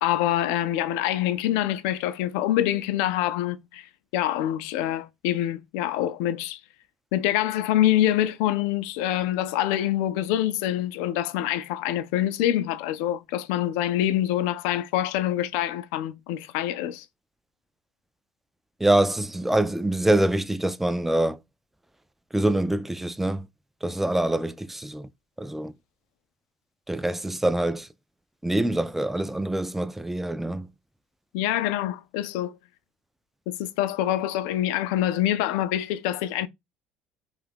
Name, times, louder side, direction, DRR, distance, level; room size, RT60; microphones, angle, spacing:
voice 1, 0.0-3.9 4.1-6.6 7.1-17.1 31.3-32.6 33.5-36.5, left 12 dB, 85° left, 0.4 m, -25 dB
voice 2, 18.8-21.4 22.3-23.5 23.8-25.1 25.4-25.7 26.9-27.9 28.4-30.7, right 1 dB, 5° right, 0.3 m, -25 dB
2.6 x 2.4 x 3.4 m
supercardioid pair, 100°, 4 cm